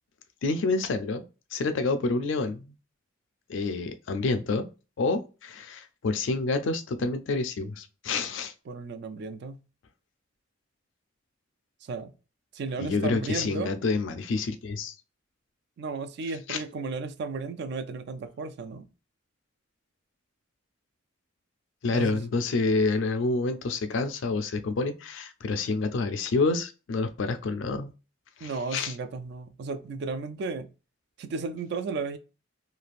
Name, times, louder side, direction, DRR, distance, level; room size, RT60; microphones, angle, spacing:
voice 1, 0.4-1.2 1.5-2.7 3.5-4.7 5.0-8.5 12.8-14.9 16.5-16.6 21.8-27.9 28.4-28.9, left 3 dB, 65° left, 0.4 m, -28 dB
voice 2, 8.7-9.6 11.8-12.1 12.5-13.7 15.8-18.9 21.8-22.2 28.4-30.7 31.2-32.2, right 4 dB, 55° right, 0.3 m, -34 dB
3.2 x 2.4 x 2.4 m
head